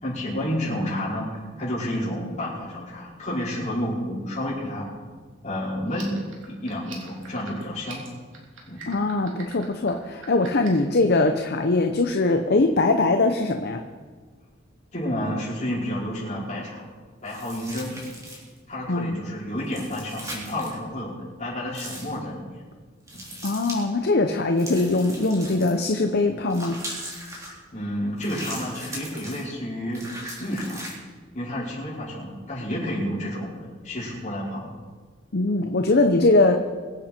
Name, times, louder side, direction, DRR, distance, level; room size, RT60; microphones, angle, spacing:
voice 1, 0.0-4.9 5.4-6.1 6.5-8.0 8.7-8.9 14.9-16.8 17.2-18.0 18.7-21.1 21.4-22.5 23.1-23.2 27.7-30.0 30.4-30.9 31.3-33.5 33.8-34.7, left 1 dB, 40° left, -6 dB, 5.3 m, -30 dB
sound 1, 5.8-10.9, right 5 dB, 85° right, 3.3 m, -44 dB
voice 2, 8.9-13.8 18.9-19.3 23.4-26.8 35.3-36.6, left 2 dB, 55° left, 5 dB, 0.8 m, -21 dB
sound 2, 17.2-18.6 19.6-20.7 21.7-22.1 23.1-23.8 24.6-25.9 26.5-27.5 28.2-29.5 29.9-30.9, right 1 dB, 15° right, 3.5 m, -38 dB
24.0 x 8.7 x 4.5 m, 1.5 s
head